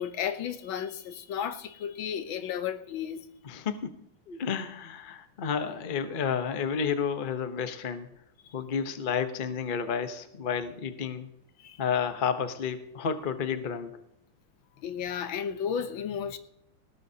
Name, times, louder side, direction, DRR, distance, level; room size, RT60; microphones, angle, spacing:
voice 1, 0.0-3.2 8.4-8.5 11.6-11.8 14.8-16.4, left 8 dB, 70° left, 1.5 m, -33 dB
voice 2, 3.4-3.9 4.3-8.1 8.5-11.3 11.8-14.0, left 7 dB, 50° left, 0.6 m, -31 dB
19.0 x 17.5 x 2.8 m
omnidirectional pair, 2.4 m